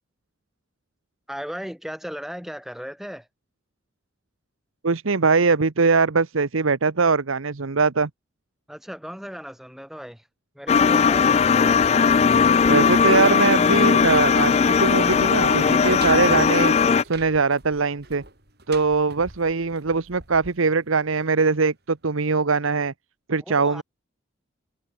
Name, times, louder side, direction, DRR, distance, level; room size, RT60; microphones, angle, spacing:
voice 1, 1.3-3.3 8.7-10.3 10.5-11.3 23.5-23.8, equal, ahead, 1.6 m, -36 dB
voice 2, 4.8-8.1 12.7-16.8 17.0-18.2 18.7-22.9 23.3-23.8, right 4 dB, 85° right, 0.9 m, -21 dB
sound 1, 10.7-17.0, left 6 dB, 30° left, 0.3 m, -18 dB
sound 2, 11.1-21.9 22.2-22.3, right 3 dB, 50° right, 6.7 m, -46 dB
head